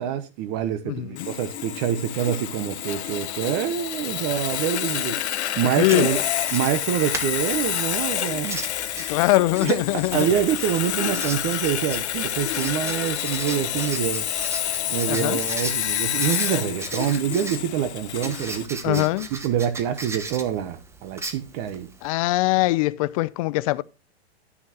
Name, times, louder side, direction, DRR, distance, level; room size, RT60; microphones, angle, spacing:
voice 1, 0.0-5.1 5.6-6.2 6.5-8.6 9.6-9.8 10.1-14.2 14.9-21.9, right 10 dB, 30° right, 0.9 m, -26 dB
voice 2, 0.8-1.3 5.8-6.1 9.1-10.3 15.1-15.4 18.8-19.3 22.0-23.8, left 19 dB, 30° left, 0.5 m, -22 dB
Sawing, 1.2-18.7, left 11 dB, 75° left, 0.9 m, -28 dB
Writing, 5.8-22.1, right 3 dB, 10° right, 1.0 m, -38 dB
10.5 x 9.7 x 2.9 m
hypercardioid pair, 140°, 34 cm